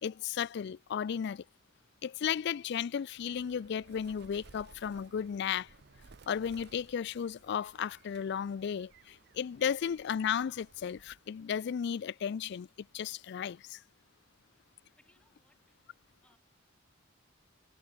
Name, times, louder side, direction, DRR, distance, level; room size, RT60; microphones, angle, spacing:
voice 1, 0.0-1.4 2.0-5.7 6.3-12.7 12.9-13.8, left 8 dB, 55° left, 0.3 m, -34 dB
Bird, 3.1-11.4, right 4 dB, 55° right, 0.7 m, -59 dB
voice 2, 14.5-15.8 16.2-16.4, left 1 dB, 5° left, 5.9 m, -70 dB
head